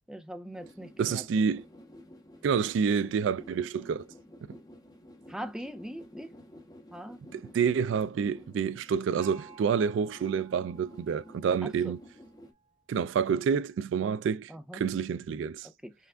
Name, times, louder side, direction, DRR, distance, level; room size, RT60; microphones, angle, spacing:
voice 1, 0.1-1.2 5.3-6.3 6.9-7.2 11.8-11.9 14.5-14.8 15.8-15.9, equal, 5° right, 0.5 m, -41 dB
sound 1, 0.5-12.5, equal, 20° left, 0.9 m, -52 dB
voice 2, 1.0-1.6 2.4-4.0 7.3-12.0 12.9-15.7, right 6 dB, 75° right, 0.3 m, -28 dB
Gong, 9.2-12.7, right 5 dB, 45° right, 1.6 m, -54 dB
5.6 x 2.5 x 3.4 m
head